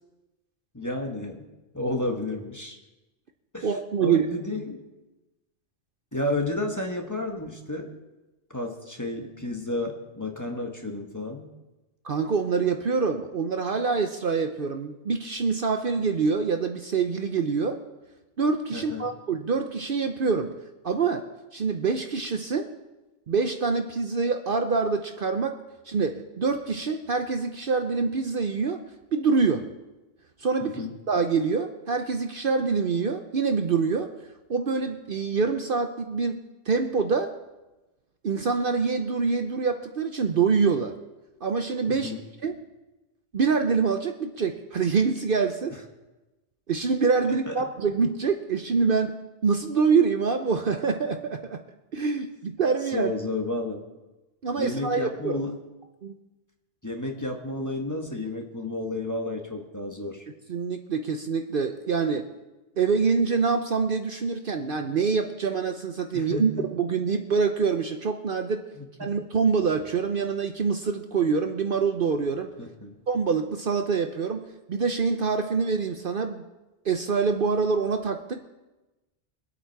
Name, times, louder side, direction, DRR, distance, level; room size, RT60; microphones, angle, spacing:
voice 1, 0.7-1.4 1.7-2.8 3.5-3.7 4.0-4.8 6.1-8.0 8.5-11.5 18.7-19.1 30.6-30.9 41.9-42.2 47.5-47.6 52.9-53.9 54.6-55.6 56.8-60.2 66.1-66.7 68.8-69.1 72.6-73.0, left 2 dB, 15° left, 2 dB, 1.4 m, -31 dB
voice 2, 3.6-4.2 12.0-17.8 18.4-20.6 20.8-21.2 21.5-22.7 23.3-25.6 25.9-28.8 29.1-29.7 30.4-30.8 31.1-34.1 34.5-37.3 38.2-40.9 41.4-42.1 42.4-42.6 43.3-45.7 46.7-49.1 49.4-51.6 51.9-53.1 54.4-55.4 56.0-56.1 60.5-62.2 62.8-68.6 69.0-72.5 73.1-74.4 74.7-76.4 76.8-78.4, right 5 dB, 55° right, 6 dB, 0.9 m, -25 dB
23.0 x 8.4 x 4.6 m, 1.1 s
omnidirectional pair, 1.2 m